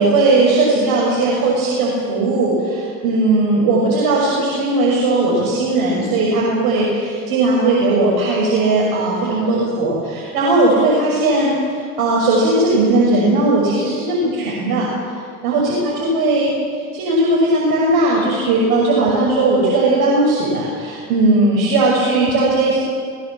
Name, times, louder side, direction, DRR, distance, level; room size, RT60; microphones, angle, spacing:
voice 1, 0.0-11.5 12.0-14.9 15.4-16.5 16.9-22.8, right 2 dB, 60° right, -4 dB, 6.5 m, -17 dB
21.0 x 19.0 x 7.6 m, 2.1 s
hypercardioid pair, 75°, 41 cm